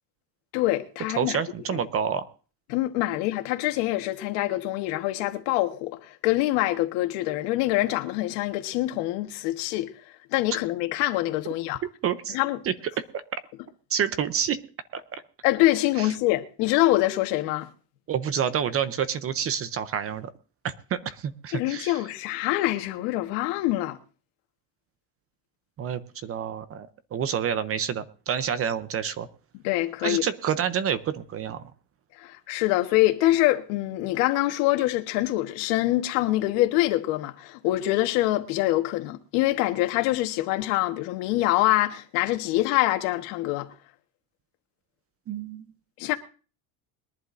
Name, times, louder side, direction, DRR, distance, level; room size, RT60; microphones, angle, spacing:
voice 1, 0.5-1.4 2.7-9.9 10.3-11.8 12.3-12.6 15.4-17.7 21.5-24.0 29.6-30.2 32.2-43.7 46.0-46.2, left 16 dB, 70° left, 1.5 m, -25 dB
voice 2, 1.1-2.3 12.0-12.4 12.6-13.4 13.9-14.6 14.9-15.0 16.0-16.1 18.1-20.3 20.6-22.1 25.8-29.3 30.0-31.6 45.3-45.6, right 8 dB, 30° right, 0.7 m, -28 dB
22.0 x 11.0 x 2.6 m
cardioid pair, 145°, 47 cm